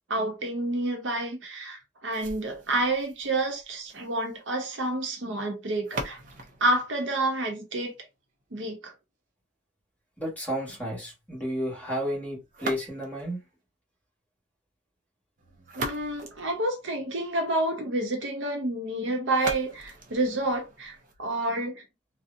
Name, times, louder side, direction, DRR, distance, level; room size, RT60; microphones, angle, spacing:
voice 1, 0.1-6.2 6.6-7.9 8.5-8.9 15.7-21.8, right 2 dB, 85° right, 0.8 m, -29 dB
sound 1, 2.1-8.1 12.5-13.4 15.4-17.3 19.3-21.3, right 2 dB, 45° right, 0.5 m, -40 dB
voice 2, 10.2-13.4, equal, 10° left, 1.2 m, -32 dB
2.6 x 2.1 x 2.4 m
head